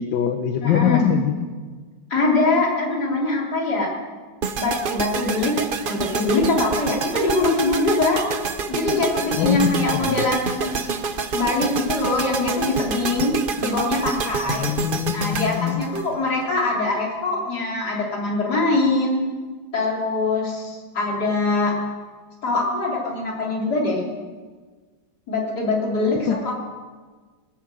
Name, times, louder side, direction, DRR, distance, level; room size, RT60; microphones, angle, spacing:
voice 1, 0.0-1.3 9.4-10.0 14.5-15.8 26.3-26.4, left 9 dB, 85° left, 7 dB, 1.6 m, -23 dB
voice 2, 0.6-1.1 2.1-3.9 4.6-5.6 5.9-8.2 8.7-10.6 11.3-14.7 15.1-19.2 19.7-21.7 22.4-24.0 25.3-26.5, left 2 dB, 60° left, -3 dB, 3.9 m, -23 dB
sound 1, 4.4-16.6, right 5 dB, 55° right, 0.6 m, -28 dB
20.0 x 9.5 x 7.6 m, 1.4 s
omnidirectional pair, 1.9 m